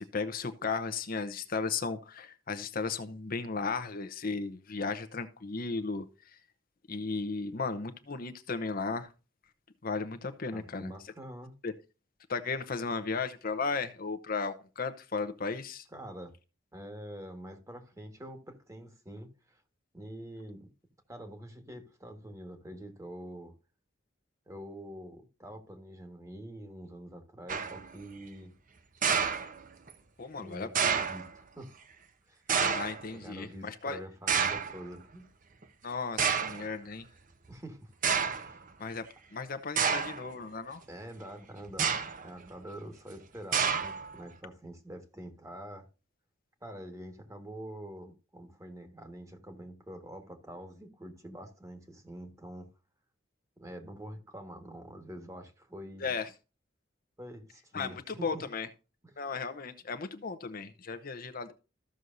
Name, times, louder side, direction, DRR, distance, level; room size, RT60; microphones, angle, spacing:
voice 1, 0.0-6.0 6.9-9.1 9.8-10.9 11.6-11.7 12.3-15.8 30.2-31.0 32.6-34.0 35.8-37.1 38.8-39.1 39.3-40.8 56.0-56.3 57.7-58.7 59.2-61.5, left 4 dB, 50° left, 0.8 m, -35 dB
voice 2, 10.5-11.5 15.9-16.4 16.7-19.6 19.9-20.7 21.1-23.5 24.5-28.5 30.3-31.9 32.2-32.5 33.1-35.3 37.5-37.9 38.4-38.6 40.9-42.0 42.2-45.9 46.6-52.7 53.6-56.1 57.2-58.5 59.0-59.2, right 1 dB, 15° right, 1.6 m, -46 dB
sound 1, 27.5-27.9 29.0-29.9 30.8-31.3 32.5-33.1 34.3-34.8 35.6-35.7 36.2-36.7 37.5-37.6 38.0-38.5 39.8-40.3 41.7-42.3 43.5-44.2, right 6 dB, 45° right, 0.9 m, -29 dB
14.0 x 6.3 x 2.6 m
head